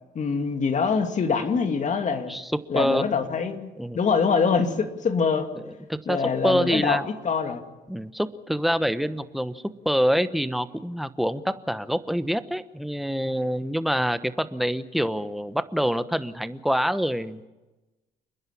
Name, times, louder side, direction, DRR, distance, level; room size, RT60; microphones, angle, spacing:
voice 1, 0.1-2.3 2.7-5.5 6.1-7.6, left 5 dB, 45° left, 6 dB, 2.6 m, -24 dB
voice 2, 2.3-3.1 3.8-4.0 5.6-7.0 7.9-17.5, equal, ahead, 12 dB, 1.1 m, -26 dB
29.5 x 10.5 x 10.0 m, 1.1 s
cardioid pair, 95°, 18 cm